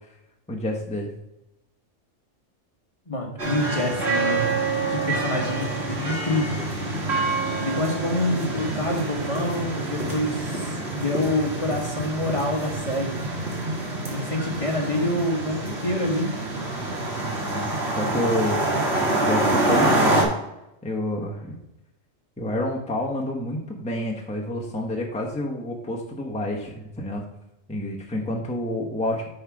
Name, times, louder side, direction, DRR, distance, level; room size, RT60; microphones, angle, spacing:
voice 1, 0.5-1.1 17.5-18.7 19.1-20.3 20.8-21.6 22.4-27.3 27.7-29.3, left 1 dB, 5° left, -1 dB, 1.1 m, -29 dB
voice 2, 3.1-6.6 7.6-13.3 14.1-16.5, left 1 dB, 25° left, 0 dB, 1.3 m, -27 dB
sound 1, 3.4-20.2, right 2 dB, 55° right, 2.1 m, -26 dB
9.9 x 4.0 x 4.8 m, 0.90 s
omnidirectional pair, 1.3 m